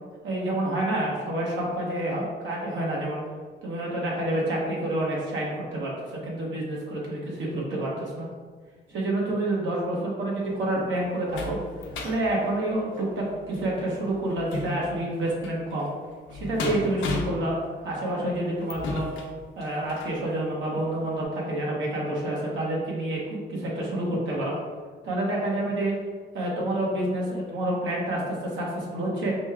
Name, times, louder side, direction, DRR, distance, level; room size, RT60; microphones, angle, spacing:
voice 1, 0.2-3.2 3.6-8.3 8.9-11.6 12.0-15.9 16.3-17.5 17.8-19.1 19.6-23.2 23.5-24.5 25.0-25.9 26.3-29.3, right 1 dB, 75° right, -4 dB, 1.1 m, -28 dB
sound 1, 10.4-20.2 20.8-20.9 21.2-21.3, left 2 dB, 75° left, 0.7 m, -36 dB
5.1 x 2.2 x 3.5 m, 1.5 s
cardioid pair, 90°, 20 cm